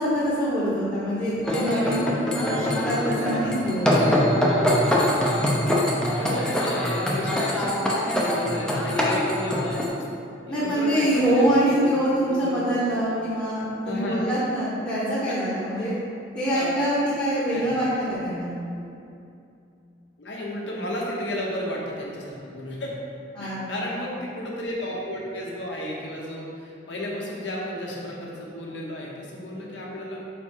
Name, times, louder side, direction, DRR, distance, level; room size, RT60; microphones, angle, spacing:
voice 1, 0.0-4.2 10.5-15.9 16.3-18.5 23.3-23.9, equal, 25° left, -11 dB, 1.0 m, -25 dB
sound 1, 1.5-9.9, left 1 dB, 5° left, 0.6 m, -23 dB
voice 2, 6.0-9.8 10.5-12.6 13.8-14.4 15.3-15.4 15.7-15.9 16.5-16.7 17.5-17.7 20.2-22.9 23.4-30.2, left 1 dB, 70° left, -3 dB, 1.1 m, -33 dB
4.8 x 4.4 x 4.4 m, 2.6 s
head